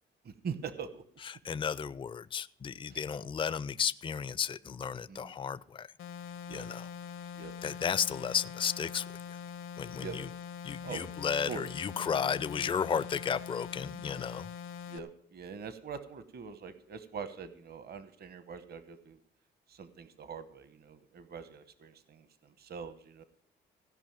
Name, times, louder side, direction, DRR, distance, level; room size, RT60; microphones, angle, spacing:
voice 1, 0.2-1.0 2.9-3.0 5.1-5.3 6.5-6.7 7.4-7.5 10.0-10.2 10.8-11.0 11.5-11.7 13.9-14.0 14.9-19.2 19.7-23.2, right 6 dB, 55° right, 12 dB, 1.1 m, -43 dB
voice 2, 1.3-5.9 6.5-6.9 7.6-9.1 9.8-10.3 10.6-14.5, left 7 dB, 25° left, 17 dB, 0.4 m, -33 dB
sound 1, 6.0-15.0, left 7 dB, 85° left, 1.0 m, -43 dB
16.0 x 5.4 x 8.9 m, 0.62 s
cardioid pair, 90°, 20 cm